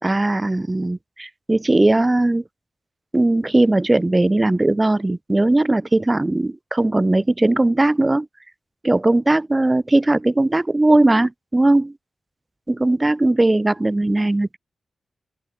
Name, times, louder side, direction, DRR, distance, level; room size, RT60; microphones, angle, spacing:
voice 1, 0.0-2.4 3.1-8.3 8.8-11.9 12.7-14.6, right 2 dB, 15° right, 4.7 m, -18 dB
open air
wide cardioid pair, 125°, 0 cm